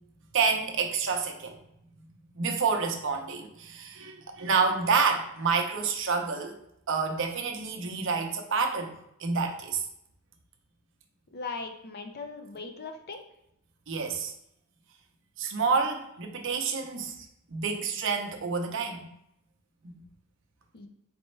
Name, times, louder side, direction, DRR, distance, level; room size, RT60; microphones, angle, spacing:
voice 1, 0.3-1.6 2.3-6.6 6.9-8.9 9.2-9.8 13.9-14.3 15.4-17.3 17.5-19.1 19.8-19.9, right 5 dB, 60° right, 3 dB, 0.7 m, -28 dB
voice 2, 11.3-13.2 20.7-20.9, left 4 dB, 45° left, 6 dB, 0.5 m, -39 dB
4.2 x 3.3 x 3.2 m, 0.78 s
head